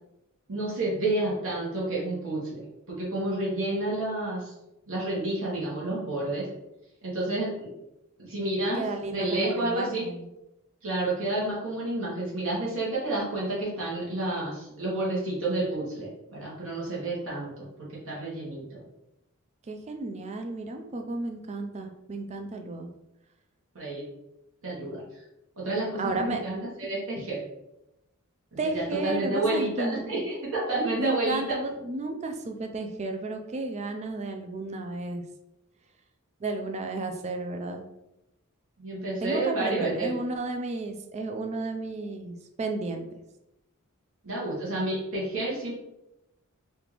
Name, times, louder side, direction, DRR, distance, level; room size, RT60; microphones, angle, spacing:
voice 1, 0.5-4.5 4.9-6.5 7.0-7.7 8.2-10.0 10.8-18.8 23.7-24.1 24.6-25.2 25.6-27.4 28.5-31.4 38.8-40.1 44.2-45.7, right 2 dB, 65° right, -6 dB, 1.1 m, -30 dB
voice 2, 8.7-10.3 19.7-22.9 26.0-26.4 28.6-30.1 31.0-35.2 36.4-37.8 39.2-43.1, right 2 dB, 30° right, 5 dB, 0.4 m, -33 dB
3.5 x 2.4 x 3.0 m, 0.88 s
head